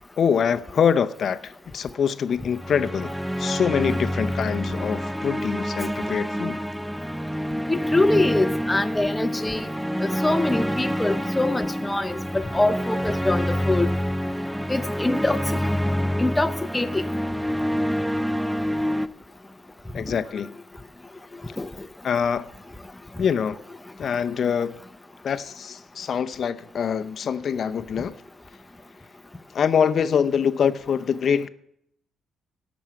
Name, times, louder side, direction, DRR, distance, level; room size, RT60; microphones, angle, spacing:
voice 1, 0.2-3.1 3.4-6.6 19.9-20.5 22.0-22.4 23.2-23.6 24.0-24.8 25.2-28.1 29.5-31.5, left 7 dB, 55° left, 0.6 m, -24 dB
sound 1, 2.5-19.1, equal, 5° right, 0.4 m, -27 dB
voice 2, 7.7-9.7 10.0-13.9 14.7-15.4 16.2-17.0 20.1-20.2 21.6-21.7, left 2 dB, 10° left, 0.8 m, -24 dB
17.0 x 6.2 x 5.8 m
cardioid pair, 90°, 0 cm